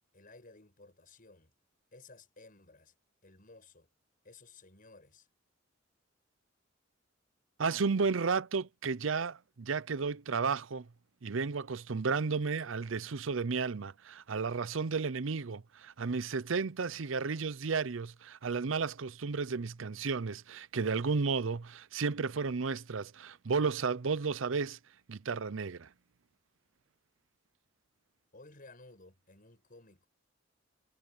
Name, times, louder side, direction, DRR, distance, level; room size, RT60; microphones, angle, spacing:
voice 1, 0.1-1.5 1.9-2.9 3.2-3.9 4.2-5.3 28.3-30.1, left 3 dB, 45° left, 7.0 m, -56 dB
voice 2, 7.6-10.9 11.2-24.8 25.1-25.9, right 5 dB, 70° right, 0.6 m, -33 dB
head